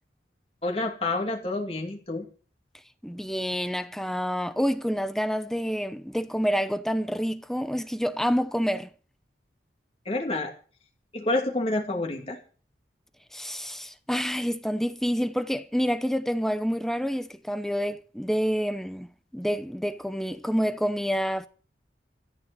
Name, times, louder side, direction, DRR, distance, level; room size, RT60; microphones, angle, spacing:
voice 1, 0.6-2.3 10.1-10.5 11.1-12.4, left 2 dB, 35° left, 2.6 m, -28 dB
voice 2, 3.0-8.9 13.3-21.5, equal, ahead, 0.7 m, -28 dB
13.5 x 9.8 x 7.0 m
head